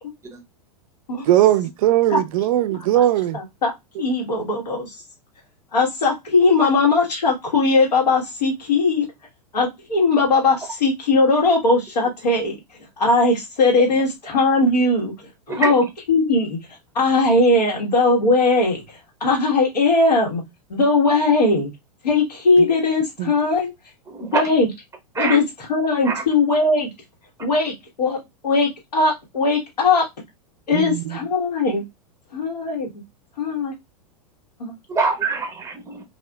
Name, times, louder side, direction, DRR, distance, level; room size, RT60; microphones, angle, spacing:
voice 1, 1.3-3.4 23.2-23.3 30.7-31.0, right 13 dB, 60° right, 0.4 m, -18 dB
voice 2, 3.3-3.7 4.0-4.9 5.7-9.1 9.5-12.6 13.0-16.6 16.9-20.4 20.7-21.7 22.0-23.7 24.2-24.7 25.2-25.4 25.7-26.9 27.4-28.2 28.4-30.1 30.7-31.8 32.3-32.9 33.4-33.7 34.6-34.7, left 3 dB, 85° left, 1.2 m, -19 dB
voice 3, 15.5-15.8 24.1-24.4 25.1-25.4 26.0-26.2 34.9-36.0, right 4 dB, 15° right, 0.8 m, -24 dB
2.6 x 2.4 x 2.2 m
hypercardioid pair, 100°, 20 cm